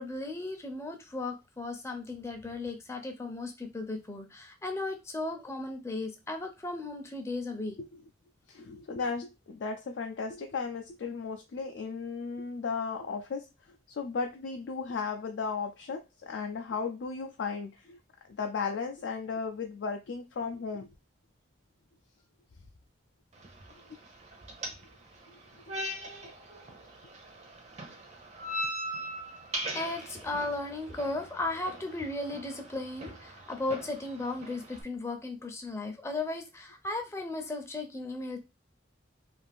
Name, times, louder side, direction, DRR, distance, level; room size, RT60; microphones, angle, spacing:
voice 1, 0.0-7.8 29.7-38.4, left 2 dB, 15° left, 0.5 m, -36 dB
voice 2, 8.5-13.5 13.9-18.0 18.4-20.9 25.3-25.4, left 5 dB, 70° left, 0.4 m, -35 dB
sound 1, 23.3-34.8, right 1 dB, 35° right, 0.6 m, -41 dB
2.5 x 2.5 x 3.3 m
head